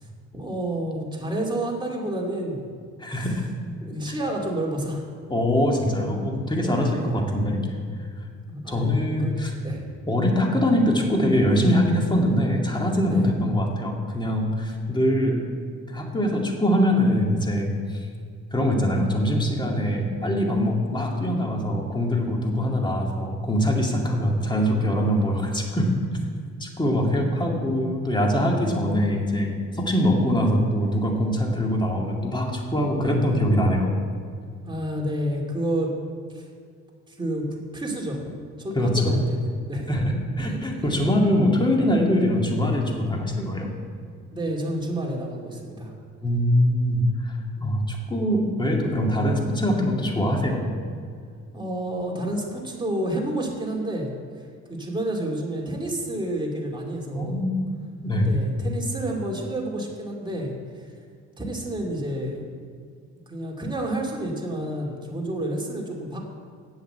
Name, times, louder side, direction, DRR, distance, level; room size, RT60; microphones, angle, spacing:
voice 1, 0.3-2.7 3.1-3.3 3.8-5.1 6.6-7.1 8.5-9.3 9.6-9.8 13.1-13.2 34.7-35.9 36.3-36.4 37.1-37.4 37.7-38.2 38.6-39.9 40.5-41.0 43.5-43.6 44.3-45.9 47.6-47.8 51.5-54.1 54.7-57.4 58.2-60.5 61.4-62.4 63.3-66.2, right 1 dB, 15° right, -2 dB, 2.7 m, -29 dB
voice 2, 3.0-3.5 5.3-7.7 8.7-9.5 10.1-15.5 15.9-18.0 18.5-25.9 26.6-33.9 38.7-39.1 39.9-43.7 46.2-50.6 57.1-57.6 58.0-58.3, equal, 15° left, 0 dB, 2.2 m, -23 dB
8.8 x 7.9 x 8.0 m, 2.1 s
cardioid pair, 90°, 30 cm